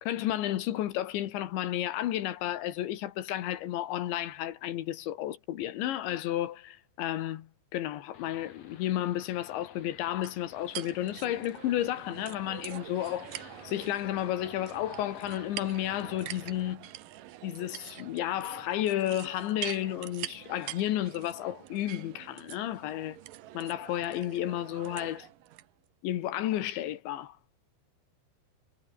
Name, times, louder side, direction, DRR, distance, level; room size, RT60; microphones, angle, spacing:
voice 1, 0.0-16.9 17.4-23.2 23.5-25.3 26.0-27.4, left 13 dB, 75° left, 3.8 m, -32 dB
sound 1, 8.1-16.7, left 7 dB, 40° left, 2.9 m, -52 dB
sound 2, 10.2-25.7, right 14 dB, 80° right, 1.9 m, -45 dB
omnidirectional pair, 5.5 m